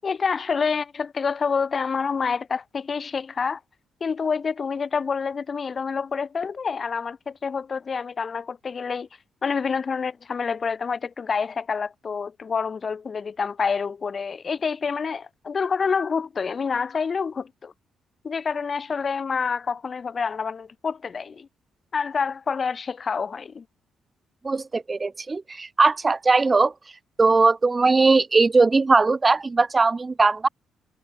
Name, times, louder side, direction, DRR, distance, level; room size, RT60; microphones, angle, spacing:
voice 1, 0.0-3.6 4.0-9.1 9.4-17.7 18.2-21.5 21.9-23.6, left 5 dB, 40° left, 7.0 m, -27 dB
voice 2, 24.4-26.7 27.2-30.5, right 3 dB, 25° right, 0.6 m, -19 dB
cardioid pair, 90°, 0 cm